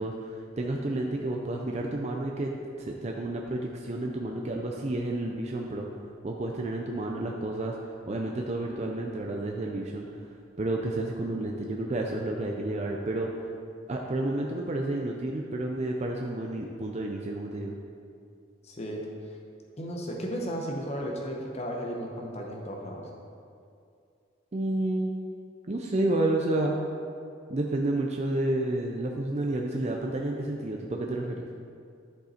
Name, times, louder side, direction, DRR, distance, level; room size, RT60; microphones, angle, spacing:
voice 1, 0.0-2.5 2.8-5.9 6.2-7.8 8.1-10.1 10.6-13.3 13.9-17.8 24.5-25.2 25.7-26.7 27.5-31.4, right 2 dB, 35° right, 0 dB, 0.5 m, -30 dB
voice 2, 18.6-19.0 19.8-23.1, equal, 30° left, 0 dB, 0.9 m, -34 dB
10.5 x 5.4 x 4.3 m, 2.4 s
head